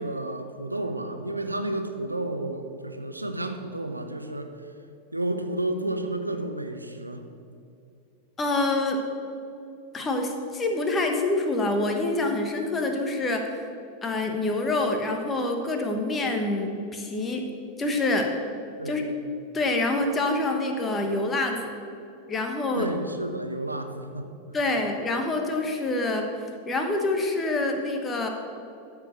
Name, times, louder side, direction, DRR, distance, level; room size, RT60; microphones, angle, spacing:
voice 1, 0.0-4.5 5.1-7.2 18.8-19.2 22.7-24.3, right 1 dB, 85° right, 6 dB, 0.7 m, -31 dB
voice 2, 8.4-9.0 9.9-13.5 14.0-17.4 17.8-18.3 18.8-19.0 19.5-21.6 22.3-22.9 24.5-26.3 26.7-28.3, left 2 dB, 20° left, 3 dB, 1.2 m, -26 dB
13.5 x 4.8 x 6.6 m, 2.5 s
figure-of-eight pair, 90°, 0 cm